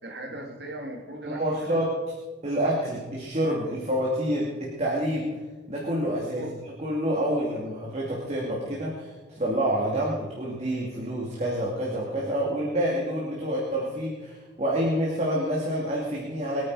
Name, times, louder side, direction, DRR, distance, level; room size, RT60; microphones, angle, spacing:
voice 1, 0.0-1.8 6.1-6.5, right 1 dB, 60° right, 2 dB, 2.3 m, -38 dB
voice 2, 1.3-1.9 2.4-5.3 5.7-16.7, equal, 35° right, -4 dB, 2.5 m, -28 dB
23.0 x 9.2 x 4.8 m, 1.2 s
head